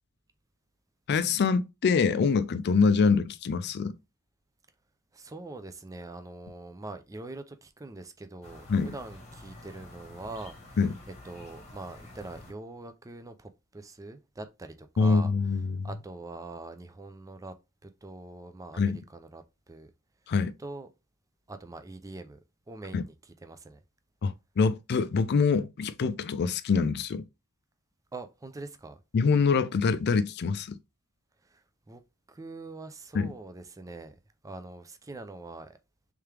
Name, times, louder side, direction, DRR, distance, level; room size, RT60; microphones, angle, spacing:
voice 1, 1.1-4.0 8.7-8.9 10.8-10.9 15.0-15.9 18.8-19.0 20.3-20.5 22.9-23.1 24.2-27.2 29.1-30.8 33.1-33.3, left 5 dB, 50° left, 0.4 m, -25 dB
voice 2, 5.1-10.8 11.2-15.3 15.8-17.5 17.8-19.9 20.6-20.9 21.5-22.4 22.7-23.8 28.1-29.0 31.4-32.0 32.3-34.1 34.4-35.8, right 2 dB, 15° right, 0.4 m, -43 dB
sound 1, 8.4-12.5, left 2 dB, 30° left, 1.1 m, -49 dB
3.4 x 3.3 x 3.2 m
head